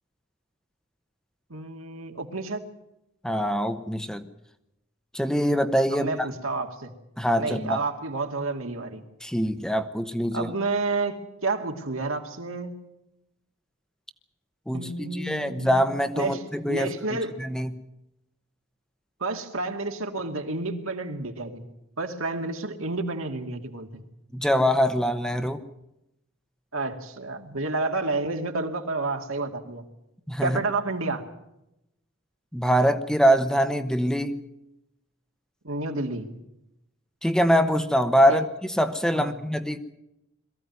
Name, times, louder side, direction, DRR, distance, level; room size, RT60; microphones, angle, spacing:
voice 1, 1.5-2.6 5.9-6.9 7.4-9.0 10.3-12.8 14.7-17.3 19.2-21.7 22.0-24.0 26.7-29.9 30.4-31.2 35.6-36.3 38.3-38.4 39.1-39.4, right 3 dB, 75° right, 5 dB, 2.4 m, -30 dB
voice 2, 3.2-4.3 5.1-6.1 7.2-7.8 9.2-10.5 14.7-17.7 24.3-25.6 30.3-30.6 32.5-34.4 37.2-39.8, equal, 5° left, 9 dB, 0.9 m, -24 dB
22.5 x 15.0 x 9.4 m, 0.86 s
head